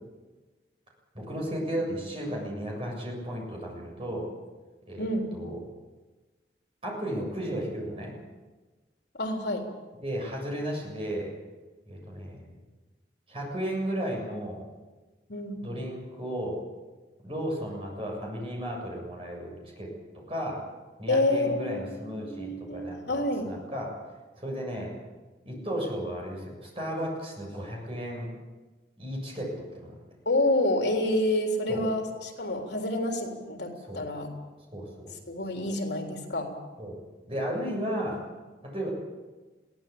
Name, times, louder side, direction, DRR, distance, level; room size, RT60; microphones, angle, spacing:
voice 1, 1.1-4.3 4.9-5.1 5.3-5.6 6.8-8.1 10.0-11.3 11.9-12.6 13.3-14.7 15.6-16.6 17.2-19.9 20.3-20.6 21.0-23.2 23.4-23.9 24.4-24.9 25.4-28.3 29.0-30.0 31.7-31.9 33.9-34.1 34.7-35.1 35.5-35.7 36.8-37.0 37.3-38.2 38.6-38.9, equal, 30° right, -1 dB, 7.3 m, -34 dB
voice 2, 5.0-5.3 9.1-9.7 15.3-15.7 21.1-23.5 30.3-34.3 35.3-36.5, left 1 dB, 80° left, 2 dB, 3.7 m, -28 dB
22.0 x 16.5 x 8.7 m, 1.3 s
head